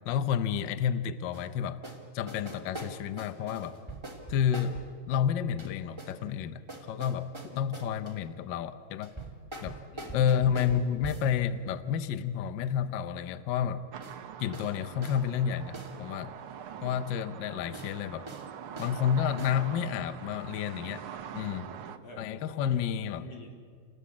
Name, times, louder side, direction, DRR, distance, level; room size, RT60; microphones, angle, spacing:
voice 1, 0.0-1.8 2.1-3.8 4.3-9.1 9.6-9.8 10.1-13.8 14.4-16.3 16.8-18.3 18.8-21.0 21.3-21.7 22.2-23.3, left 8 dB, 80° left, 12 dB, 1.0 m, -30 dB
sound 1, 1.3-1.5 1.8-2.0 2.3-4.9 5.6-6.2 6.7-8.1 9.0-11.3 14.0-14.2 14.5-14.7 15.0-15.2 15.7-15.9 17.7-17.9 18.3-18.5 18.8-19.0 19.4-19.6, right 2 dB, 10° right, 2.4 m, -43 dB
voice 2, 9.9-10.4 21.7-23.5, left 2 dB, 55° left, 1 dB, 4.4 m, -50 dB
sound 2, 13.9-22.0, right 9 dB, 60° right, 1.6 m, -44 dB
29.0 x 19.5 x 8.6 m, 2.1 s
omnidirectional pair, 3.3 m